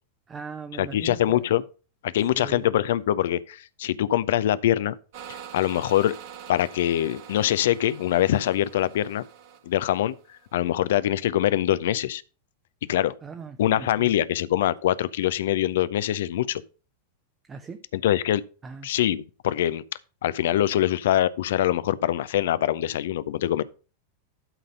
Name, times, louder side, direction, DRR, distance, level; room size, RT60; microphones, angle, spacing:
voice 1, 0.3-1.5 2.3-2.7 13.2-14.2 17.4-17.8 18.6-18.9, right 5 dB, 20° right, 0.8 m, -39 dB
voice 2, 0.8-1.6 2.0-4.9 5.5-6.1 6.5-9.2 9.7-10.1 10.5-12.2 12.9-13.1 13.6-16.6 17.9-18.4 18.8-19.8 20.2-23.6, left 12 dB, 55° left, 0.5 m, -23 dB
sound 1, 5.1-10.6, right 8 dB, 50° right, 1.6 m, -45 dB
12.0 x 4.1 x 5.3 m
figure-of-eight pair, 90°, 0 cm